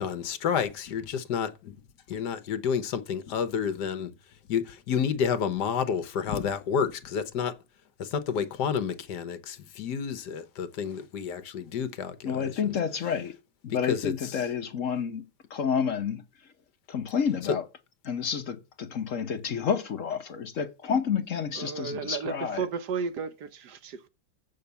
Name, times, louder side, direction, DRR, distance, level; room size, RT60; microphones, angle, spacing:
voice 1, 0.0-1.7 2.1-4.1 4.5-7.5 8.0-12.7 13.9-14.4, left 7 dB, 70° left, 1.5 m, -30 dB
voice 2, 12.2-13.3 13.6-16.2 16.9-17.6 18.0-22.6, left 7 dB, 55° left, 1.1 m, -30 dB
voice 3, 21.6-24.1, right 6 dB, 70° right, 1.4 m, -33 dB
7.5 x 6.6 x 6.9 m
omnidirectional pair, 1.9 m